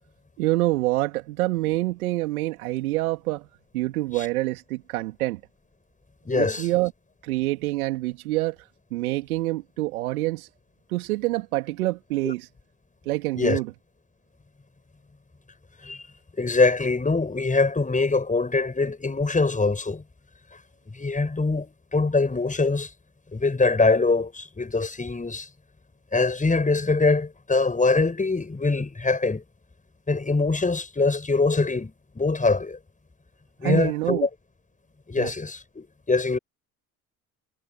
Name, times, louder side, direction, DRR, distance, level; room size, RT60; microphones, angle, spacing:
voice 1, 0.4-3.5 3.7-5.4 6.3-6.9 7.2-8.6 8.9-10.5 10.9-12.5 13.0-13.7 33.6-34.3 35.2-35.3, right 18 dB, 75° right, 3.1 m, -26 dB
voice 2, 6.2-6.7 12.2-12.3 13.4-13.6 15.8-16.0 16.4-20.0 20.9-22.9 23.3-25.5 26.1-29.4 30.1-32.8 33.6-34.3 35.1-36.4, left 3 dB, 20° left, 6.6 m, -23 dB
hypercardioid pair, 60°, 43 cm